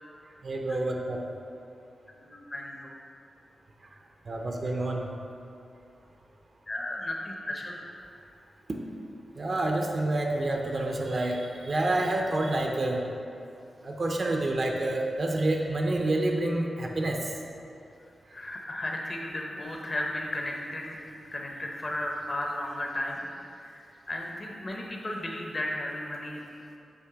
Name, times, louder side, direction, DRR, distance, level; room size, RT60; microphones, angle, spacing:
voice 1, 0.4-1.2 4.3-5.1 9.4-13.0 13.8-17.2, right 2 dB, 35° right, 1 dB, 0.6 m, -28 dB
voice 2, 2.2-2.9 6.7-7.8 18.3-21.0 21.3-26.4, left 1 dB, 25° left, 0 dB, 0.8 m, -34 dB
7.9 x 3.1 x 5.9 m, 2.5 s
wide cardioid pair, 180°, 0 cm